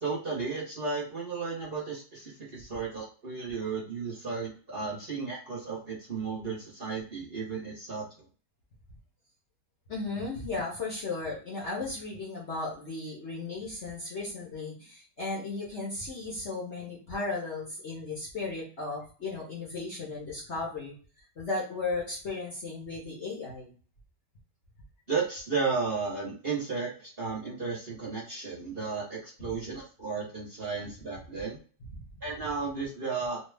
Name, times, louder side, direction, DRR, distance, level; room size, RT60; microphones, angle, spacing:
voice 1, 0.0-8.0 25.1-31.6 32.2-33.4, right 4 dB, 40° right, -6 dB, 1.1 m, -34 dB
voice 2, 9.9-21.0 21.4-23.7 29.4-29.5 31.9-32.0, left 3 dB, 50° left, -4 dB, 1.0 m, -35 dB
3.2 x 2.3 x 3.3 m, 0.40 s
omnidirectional pair, 1.9 m